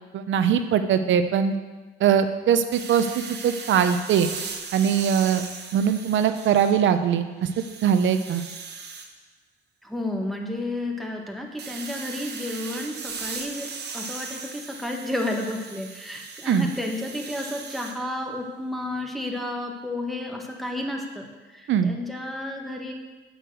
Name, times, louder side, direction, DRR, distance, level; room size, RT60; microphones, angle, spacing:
voice 1, 0.1-1.5 2.0-4.3 4.7-5.4 5.7-7.5 7.8-8.4 16.5-16.7 21.7-21.9, right 8 dB, 75° right, 9 dB, 0.8 m, -21 dB
sound 1, 2.7-7.0 7.4-9.1 11.6-18.0, right 5 dB, 55° right, 1.2 m, -38 dB
voice 2, 9.8-22.9, left 1 dB, ahead, 1 dB, 1.6 m, -32 dB
7.9 x 6.5 x 6.4 m, 1.3 s
cardioid pair, 90°, 20 cm